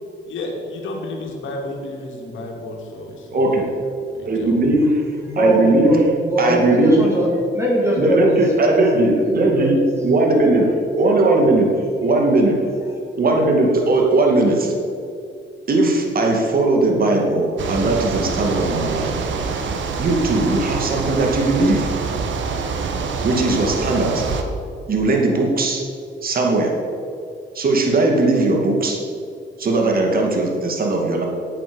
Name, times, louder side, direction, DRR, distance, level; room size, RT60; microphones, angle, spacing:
voice 1, 0.3-3.6 4.1-4.7, left 2 dB, 75° left, 1 dB, 2.6 m, -32 dB
voice 2, 3.3-3.7 4.2-5.0 5.4-6.0 6.4-7.0 8.0-10.7 11.0-12.6 13.2-14.7 15.7-19.3 20.0-21.9 23.2-24.2 24.9-25.8 26.2-26.7 27.5-29.0 29.6-31.2, right 2 dB, 50° right, 1 dB, 2.3 m, -18 dB
voice 3, 5.2-8.4 8.6-9.8, right 1 dB, 15° right, -4 dB, 3.4 m, -21 dB
sound 1, 17.6-24.4, right 5 dB, 70° right, 1.4 m, -25 dB
9.1 x 8.8 x 7.1 m, 2.4 s
cardioid pair, 90°, 20 cm